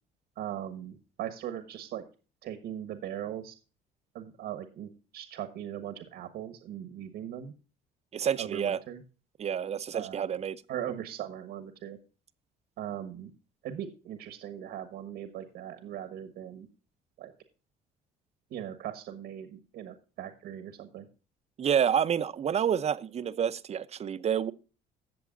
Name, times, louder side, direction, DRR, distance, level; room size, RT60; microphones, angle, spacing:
voice 1, 0.4-2.0 2.4-3.5 4.1-7.5 8.4-9.0 9.9-10.3 10.7-12.0 12.8-13.3 13.6-16.7 17.2-17.3 18.5-21.1, right 10 dB, 75° right, 1.4 m, -39 dB
voice 2, 8.1-8.8 9.4-10.6 21.6-24.5, right 8 dB, 40° right, 0.7 m, -28 dB
17.0 x 6.9 x 2.5 m
cardioid pair, 110°, 17 cm